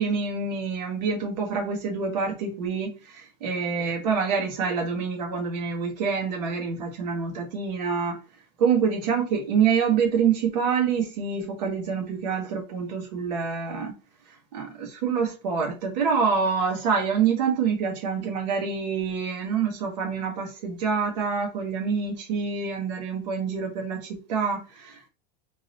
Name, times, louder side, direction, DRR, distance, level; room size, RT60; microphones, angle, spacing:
voice 1, 0.0-8.2 8.6-13.9 14.5-25.1, right 6 dB, 80° right, 1.5 m, -26 dB
3.8 x 2.7 x 2.9 m
supercardioid pair, 170°, 21 cm